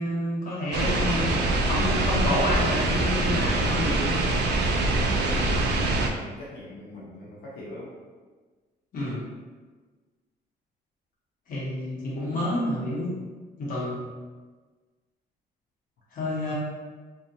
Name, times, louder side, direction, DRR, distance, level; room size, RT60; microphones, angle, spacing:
voice 1, 0.0-1.3 1.6-4.2 8.9-9.2 11.5-13.2 13.6-14.0 16.1-16.5, left 1 dB, 55° left, -6 dB, 1.1 m, -29 dB
sound 1, 0.7-6.1, right 2 dB, 75° right, 0.4 m, -24 dB
voice 2, 6.0-7.9, left 2 dB, 90° left, -6 dB, 0.6 m, -42 dB
2.7 x 2.4 x 2.6 m, 1.4 s
cardioid pair, 130°, 17 cm